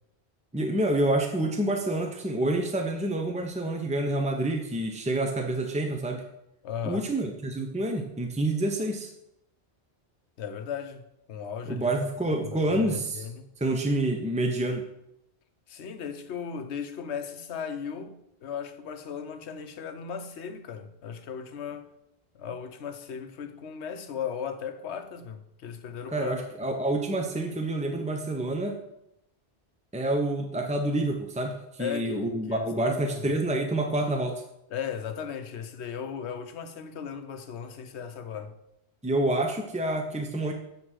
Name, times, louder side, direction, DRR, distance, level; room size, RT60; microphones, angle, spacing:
voice 1, 0.5-6.2 6.8-9.1 11.7-13.3 13.6-14.9 26.1-28.8 29.9-34.4 39.0-40.5, right 1 dB, 10° right, 0.4 m, -28 dB
voice 2, 6.6-7.1 10.4-11.0 11.3-11.9 12.4-13.5 15.7-21.9 22.3-26.3 31.8-33.3 34.7-38.5, left 7 dB, 90° left, 1.0 m, -36 dB
7.9 x 3.7 x 6.2 m
omnidirectional pair, 1.1 m